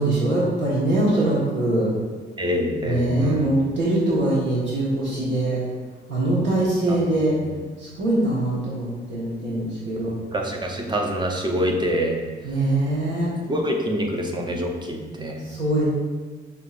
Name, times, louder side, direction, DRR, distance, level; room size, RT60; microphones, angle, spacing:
voice 1, 0.0-1.9 2.8-5.6 6.1-7.3 8.0-10.1 12.4-13.3 15.6-15.8, right 1 dB, 65° right, -7 dB, 1.4 m, -22 dB
voice 2, 2.4-3.5 6.9-7.0 10.3-12.2 13.5-15.5, equal, 20° right, 1 dB, 0.7 m, -25 dB
6.4 x 2.9 x 2.5 m, 1.4 s
cardioid pair, 90°, 20 cm